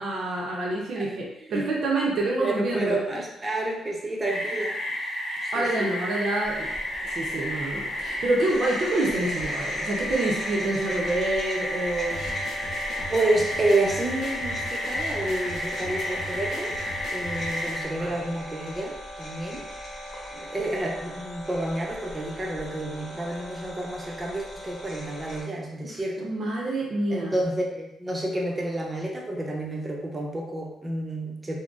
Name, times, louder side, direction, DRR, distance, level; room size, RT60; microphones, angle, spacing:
voice 1, 0.0-3.0 5.5-6.7 7.0-12.2 18.0-18.2 25.8-27.3, right 2 dB, 60° right, -4 dB, 0.6 m, -27 dB
voice 2, 2.4-5.2 5.4-6.0 13.1-16.8 17.1-19.6 20.3-26.3 27.1-31.6, right 2 dB, 20° right, -1 dB, 0.7 m, -29 dB
sound 1, 4.2-17.8, left 1 dB, 10° left, 1.1 m, -32 dB
sound 2, 6.4-25.4, equal, 50° left, 1.0 m, -39 dB
sound 3, 12.1-17.7, left 1 dB, 70° left, 0.6 m, -40 dB
3.8 x 2.1 x 2.4 m, 0.82 s
cardioid pair, 90°, 0 cm